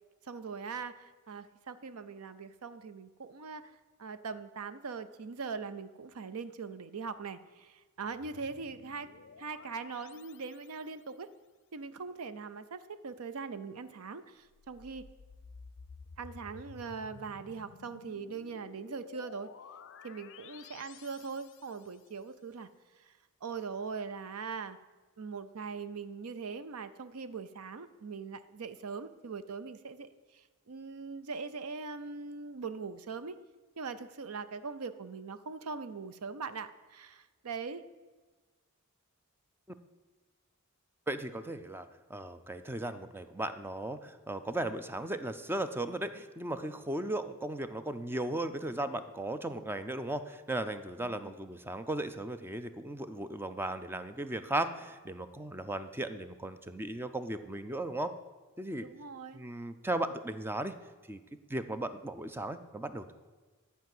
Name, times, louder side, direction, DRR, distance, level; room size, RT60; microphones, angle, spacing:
voice 1, 0.2-3.7 4.0-9.1 9.4-11.3 11.7-15.1 16.2-19.5 20.0-22.7 23.1-23.2 23.4-24.8 25.2-33.4 33.8-37.8 51.0-51.3 58.8-59.4, right 5 dB, 80° right, 13 dB, 0.6 m, -41 dB
sound 1, 8.0-11.1 14.5-22.1, left 5 dB, 60° left, 0.5 m, -53 dB
voice 2, 41.1-58.1 58.6-58.9 59.3-60.7 61.1-61.2 61.5-63.1, right 1 dB, 10° right, 10 dB, 0.5 m, -36 dB
11.0 x 4.7 x 7.8 m, 1.3 s
head